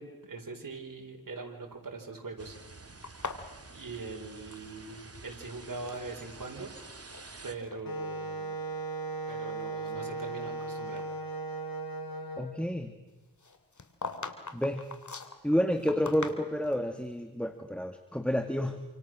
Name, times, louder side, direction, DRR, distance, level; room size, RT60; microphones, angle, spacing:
voice 1, 0.0-2.6 3.2-3.3 3.7-6.7 7.4-8.6 9.3-11.1, right 3 dB, 70° right, 3 dB, 4.5 m, -42 dB
sound 1, 2.4-7.5, right 3 dB, 45° right, 2.5 m, -49 dB
sound 2, 3.0-5.0 5.3-6.1 6.7-7.3 7.6-7.8 8.5-8.6 9.1-10.6 11.0-11.1 13.4-16.8, left 4 dB, 55° left, 2.9 m, -42 dB
Wind instrument woodwind instrument, 7.8-12.5, right 3 dB, 90° left, 4.0 m, -37 dB
voice 2, 12.4-12.9 14.5-14.8 15.4-18.8, equal, 5° left, 7 dB, 2.1 m, -30 dB
28.0 x 26.5 x 6.3 m, 1.2 s
cardioid pair, 50°, 34 cm